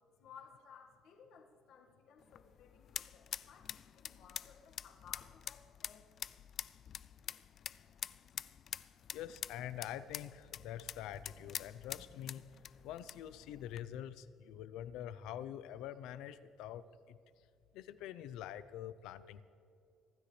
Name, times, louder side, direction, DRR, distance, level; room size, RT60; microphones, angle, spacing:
voice 1, 0.2-6.1, left 6 dB, 65° left, 0 dB, 1.7 m, -59 dB
sound 1, 2.2-13.8, left 9 dB, 45° left, 0.3 m, -47 dB
voice 2, 9.1-17.2 17.7-19.4, left 11 dB, 85° left, 15 dB, 0.6 m, -46 dB
25.0 x 13.0 x 3.3 m, 2.6 s
cardioid pair, 140°, 0 cm